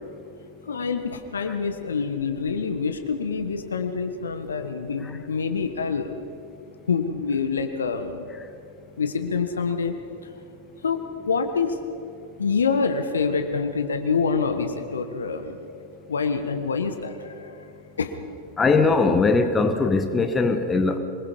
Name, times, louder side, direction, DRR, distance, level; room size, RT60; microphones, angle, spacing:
voice 1, 0.6-6.1 6.9-8.3 9.0-9.9 10.8-11.0 11.3-11.8 12.4-15.6 16.1-17.6 18.0-18.1, left 5 dB, 70° left, 8 dB, 1.5 m, -26 dB
voice 2, 18.6-21.0, left 4 dB, 15° left, 7 dB, 1.6 m, -20 dB
26.5 x 20.5 x 5.4 m, 2.7 s
figure-of-eight pair, 90°, 0 cm